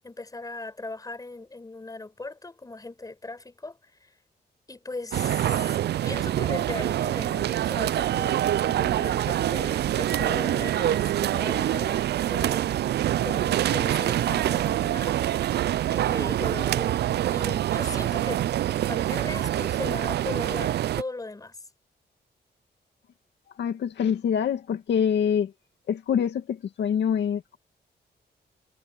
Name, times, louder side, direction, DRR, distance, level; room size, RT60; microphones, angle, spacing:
voice 1, 0.0-4.1 4.7-5.8 6.0-12.7 13.2-15.4 15.9-17.0 17.3-18.5 18.7-21.6, left 2 dB, 20° left, 4.9 m, -38 dB
sound 1, 5.1-21.0, right 12 dB, 70° right, 0.4 m, -25 dB
voice 2, 23.6-25.5 25.9-27.6, left 8 dB, 80° left, 2.3 m, -25 dB
wide cardioid pair, 120°, 18 cm